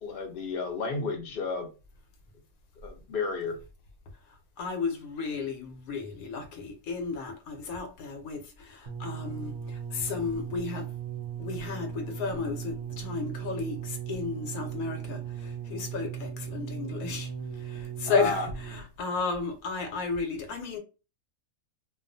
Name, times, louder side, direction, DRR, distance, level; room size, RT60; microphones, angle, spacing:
voice 1, 0.0-1.7 2.8-3.6 18.1-18.5, left 4 dB, 55° left, 0.7 m, -32 dB
voice 2, 4.6-10.9 11.4-17.3 17.6-20.8, left 4 dB, 80° left, 1.0 m, -33 dB
sound 1, 8.9-19.0 19.8-19.9, right 7 dB, 70° right, 0.9 m, -37 dB
2.3 x 2.3 x 2.5 m
omnidirectional pair, 1.5 m